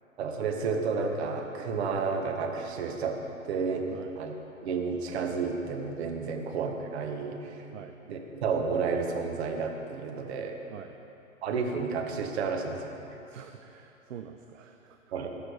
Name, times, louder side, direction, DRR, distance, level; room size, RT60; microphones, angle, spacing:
voice 1, 0.2-3.9 4.1-4.3 4.6-7.7 8.1-10.6 11.4-12.9 15.1-15.3, right 5 dB, 50° right, 3 dB, 1.5 m, -31 dB
voice 2, 13.3-15.1, right 8 dB, 65° right, 6 dB, 0.7 m, -46 dB
17.0 x 6.1 x 4.8 m, 2.9 s
figure-of-eight pair, 115°, 41 cm